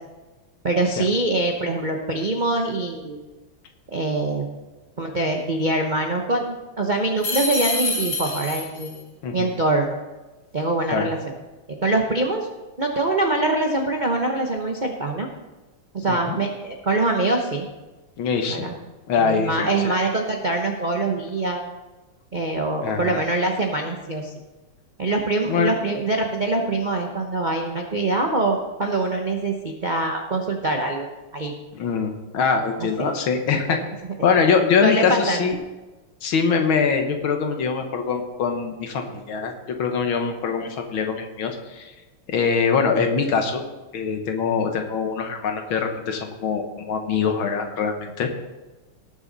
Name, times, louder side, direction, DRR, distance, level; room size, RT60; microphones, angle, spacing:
voice 1, 0.6-3.2 3.9-4.5 5.0-9.1 9.3-10.0 10.5-11.2 11.8-12.5 12.8-15.3 15.9-17.7 18.5-18.7 19.2-21.6 22.3-24.3 25.0-31.1 31.3-31.5 32.8-33.1 33.5-34.1 34.8-35.4, right 2 dB, 45° right, 1 dB, 0.6 m, -24 dB
sound 1, 7.2-8.9, left 2 dB, 90° left, 4.2 m, -26 dB
voice 2, 18.2-18.7 19.1-20.0 22.8-23.2 25.5-25.7 31.7-33.8 34.2-35.6 36.2-39.5 39.8-41.9 42.3-43.6 43.9-48.3, left 5 dB, 70° left, 5 dB, 2.0 m, -23 dB
18.5 x 7.0 x 4.0 m, 1.2 s
omnidirectional pair, 2.4 m